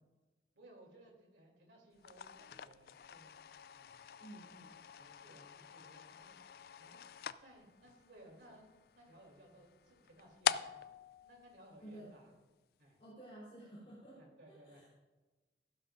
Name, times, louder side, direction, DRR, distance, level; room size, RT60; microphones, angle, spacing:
voice 1, 0.5-3.3 3.7-4.0 5.0-7.0 7.4-10.8 11.2-12.3 12.8-13.0 14.1-14.9, right 1 dB, 90° right, 0 dB, 3.3 m, -61 dB
sound 1, 2.0-12.4, left 8 dB, 55° left, 0.3 m, -44 dB
voice 2, 4.2-4.8 11.8-12.1 13.0-14.2 14.5-14.9, right 1 dB, 35° left, -8 dB, 3.7 m, -52 dB
14.5 x 12.0 x 2.6 m, 1.2 s
head